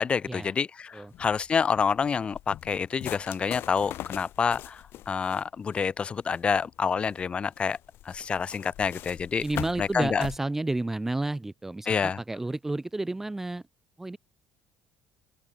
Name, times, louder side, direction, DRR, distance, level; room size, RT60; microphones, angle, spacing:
voice 1, 0.0-7.8 8.0-9.4 9.8-10.2 11.9-12.2, left 6 dB, 25° left, 1.2 m, -28 dB
sound 1, 1.1-10.4, left 14 dB, 55° left, 3.6 m, -42 dB
voice 2, 9.4-13.6 14.0-14.2, right 2 dB, 5° right, 0.7 m, -31 dB
open air
cardioid pair, 170°, 5 cm